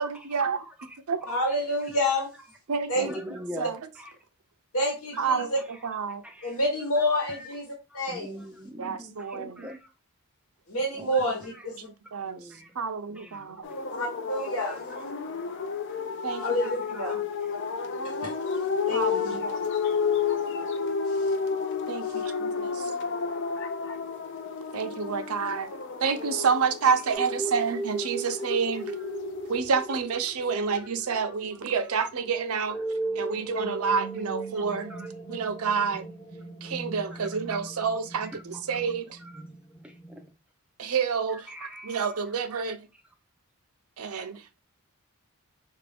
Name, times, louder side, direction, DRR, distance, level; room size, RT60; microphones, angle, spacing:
voice 1, 0.0-0.6 1.1-1.2 2.7-3.1 3.6-3.8 5.2-5.5 5.8-6.2 8.8-9.7 12.1-12.4 12.8-13.6 16.2-16.7 17.1-17.2 18.9-19.6 21.9-22.9 24.7-25.7 26.0-28.9 29.5-32.8 33.2-34.9 35.3-36.0 36.6-39.2 40.8-42.8 44.0-44.6, right 5 dB, 80° right, 0.6 m, -29 dB
voice 2, 1.3-2.3 2.9-3.1 4.7-5.6 6.4-7.7 7.9-8.3 10.7-11.7 13.9-14.8 16.3-17.1 18.2-18.3 18.9-19.4, left 1 dB, 80° left, 1.2 m, -28 dB
voice 3, 3.0-4.1 6.2-6.6 7.3-7.5 7.9-9.8 10.9-11.2 12.3-12.7 13.1-13.7 14.7-15.0 22.3-22.4 25.5-25.6 28.4-28.6 33.7-33.8 34.6-34.7 34.9-35.1 38.2-38.4 39.2-39.4 39.8-40.2 41.3-42.0, equal, 5° right, 0.4 m, -42 dB
sound 1, 13.6-29.6, left 5 dB, 55° left, 0.5 m, -31 dB
sound 2, 27.1-40.3, right 3 dB, 15° left, 0.8 m, -37 dB
5.1 x 2.5 x 3.4 m
head